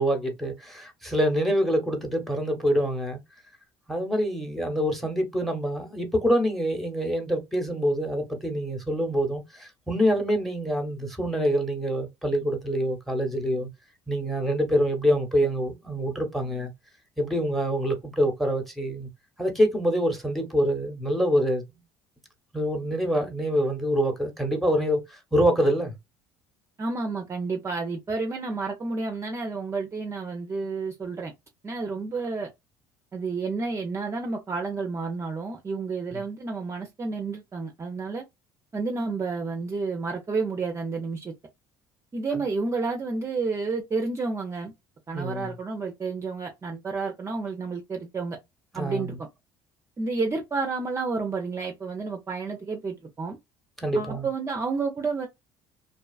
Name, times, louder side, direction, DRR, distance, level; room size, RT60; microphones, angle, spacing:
voice 1, 0.0-3.2 3.9-13.7 14.1-16.7 17.2-19.1 19.4-21.6 22.5-26.0 36.1-36.2 42.3-42.4 45.1-45.5 48.7-49.2 53.8-54.3, equal, ahead, 0.9 m, -25 dB
voice 2, 26.8-31.3 31.6-32.5 33.1-38.2 38.7-41.3 42.1-44.7 45.1-48.4 48.7-49.2 50.0-53.4 53.9-55.3, right 4 dB, 25° right, 0.5 m, -30 dB
2.5 x 2.2 x 2.3 m
supercardioid pair, 80°, 11 cm